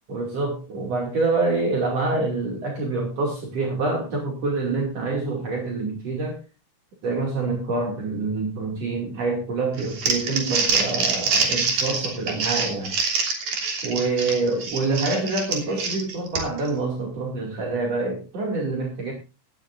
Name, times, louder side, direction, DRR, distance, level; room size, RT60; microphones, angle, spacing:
voice 1, 0.1-6.4 7.0-12.9 13.8-19.1, right 3 dB, 55° right, 0 dB, 3.6 m, -26 dB
Crumpling crinkling, 9.8-16.7, right 4 dB, 85° right, 4.6 m, -25 dB
17.0 x 15.0 x 2.6 m, 0.30 s
omnidirectional pair, 3.5 m